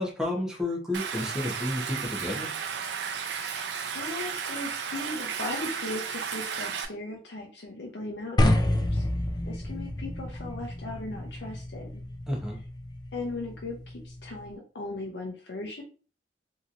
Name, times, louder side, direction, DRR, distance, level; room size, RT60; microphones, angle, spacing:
voice 1, 0.0-2.5 12.3-12.6, left 1 dB, 5° right, -3 dB, 0.8 m, -31 dB
Stream, 0.9-6.9, right 6 dB, 70° right, 0.4 m, -34 dB
voice 2, 3.2-3.6 3.9-9.0 9.5-12.1 13.1-15.8, left 2 dB, 75° left, 0 dB, 0.6 m, -38 dB
sound 1, 8.4-14.5, left 1 dB, 25° left, 0.3 m, -30 dB
3.0 x 2.7 x 2.5 m, 0.37 s
head